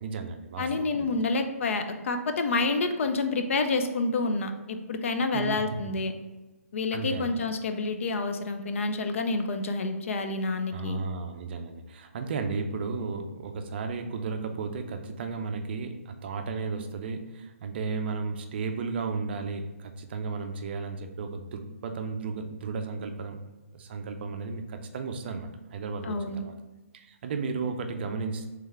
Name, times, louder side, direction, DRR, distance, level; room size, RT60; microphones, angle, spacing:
voice 1, 0.0-1.2 5.3-5.9 6.9-7.3 10.7-23.4 23.7-26.6 26.9-28.5, right 4 dB, 45° right, 6 dB, 0.4 m, -34 dB
voice 2, 0.6-6.1 6.7-11.0 26.0-26.4, left 3 dB, 60° left, 7 dB, 0.4 m, -28 dB
3.4 x 3.3 x 3.2 m, 1.1 s
hypercardioid pair, 150°, 8 cm